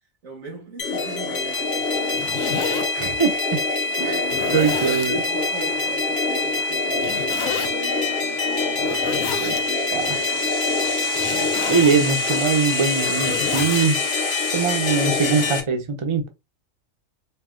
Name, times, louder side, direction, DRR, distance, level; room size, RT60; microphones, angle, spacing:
voice 1, 0.2-2.8 4.5-11.6, right 2 dB, 85° right, 2.0 m, -39 dB
sound 1, 0.8-15.6, left 3 dB, 55° left, 1.3 m, -24 dB
Zipper (clothing), 1.9-2.8 3.6-3.7 4.2-5.1 6.9-7.7 8.7-9.6 11.1-12.0 12.8-13.9, left 7 dB, 80° left, 1.0 m, -30 dB
voice 2, 2.9-3.6 4.0-4.3 4.5-5.2 9.4-9.6 9.9-10.2 11.7-14.0 14.5-16.3, right 5 dB, 30° right, 0.6 m, -22 dB
4.6 x 2.2 x 3.6 m
omnidirectional pair, 1.4 m